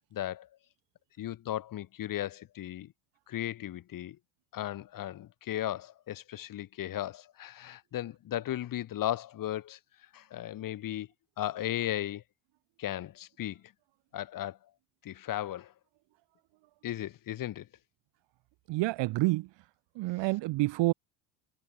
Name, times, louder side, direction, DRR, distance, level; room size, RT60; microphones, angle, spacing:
voice 1, 0.1-0.5 1.2-2.9 3.3-4.2 4.5-9.8 10.1-11.1 11.4-12.2 12.8-13.6 14.1-14.6 15.0-15.7 16.8-17.7, left 12 dB, 45° left, 2.0 m, -36 dB
voice 2, 18.7-19.5 19.9-20.9, right 20 dB, 65° right, 2.9 m, -28 dB
cardioid pair, 125°, 47 cm